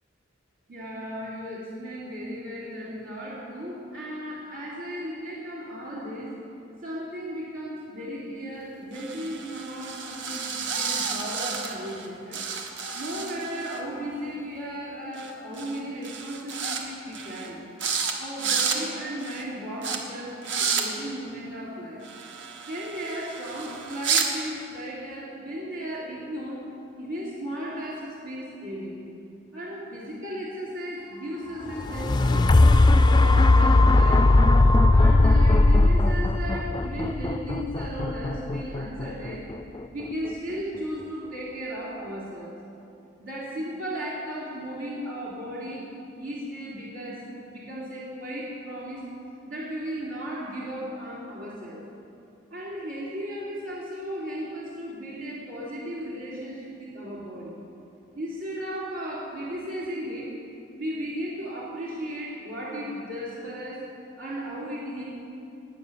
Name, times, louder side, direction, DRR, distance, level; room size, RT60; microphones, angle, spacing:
voice 1, 0.7-6.3 6.8-12.4 12.9-17.6 18.2-22.0 22.6-26.6 27.0-29.0 29.5-34.3 34.9-39.5 39.9-42.5 43.2-45.9 46.1-49.0 49.5-51.8 52.5-57.5 58.1-60.3 60.8-63.9 64.2-65.0, equal, 80° right, -7 dB, 3.5 m, -35 dB
sound 1, 8.9-12.1 12.3-13.8 15.2-15.3 15.6-15.8 16.0-16.8 17.1-17.5 17.8-18.1 18.4-18.8 19.2-19.4 19.8-20.0 20.4-20.8 22.0-24.3, right 6 dB, 65° right, 1.5 m, -31 dB
sound 2, 31.7-39.8 40.3-40.4, left 2 dB, 20° left, 0.3 m, -19 dB
20.0 x 8.5 x 7.1 m, 2.7 s
head